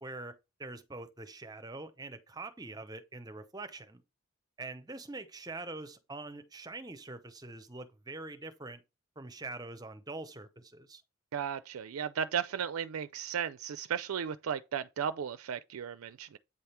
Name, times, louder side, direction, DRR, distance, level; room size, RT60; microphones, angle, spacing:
voice 1, 0.0-4.0 4.6-8.8 9.2-11.0, right 2 dB, 20° right, 0.6 m, -44 dB
voice 2, 11.3-16.4, right 8 dB, 85° right, 0.4 m, -35 dB
8.5 x 3.5 x 4.3 m
head